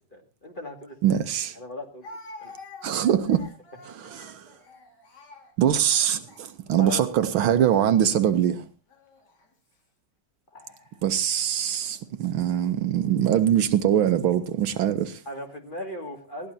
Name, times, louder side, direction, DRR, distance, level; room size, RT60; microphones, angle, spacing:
voice 1, 0.1-1.2 1.6-2.0 2.4-2.5 4.1-4.3 6.8-7.1 10.5-11.0 15.3-16.5, left 1 dB, 25° left, 2.2 m, -38 dB
Speech, 0.9-1.0 2.0-6.9 7.7-8.0 8.9-9.5, left 2 dB, 50° left, 2.5 m, -47 dB
voice 2, 1.0-1.6 2.8-3.4 3.9-4.5 5.6-8.7 11.0-15.2, right 10 dB, 75° right, 1.6 m, -23 dB
20.5 x 15.0 x 2.7 m
omnidirectional pair, 2.4 m